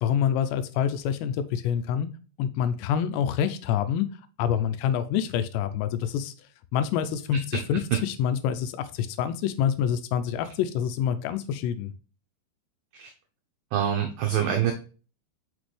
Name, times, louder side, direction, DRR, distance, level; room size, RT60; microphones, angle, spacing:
voice 1, 0.0-2.1 2.4-4.1 4.4-6.3 6.7-11.9, left 9 dB, 80° left, 10 dB, 2.6 m, -26 dB
voice 2, 13.7-14.7, right 9 dB, 85° right, 4 dB, 2.0 m, -25 dB
6.1 x 5.9 x 3.2 m, 0.37 s
omnidirectional pair, 5.2 m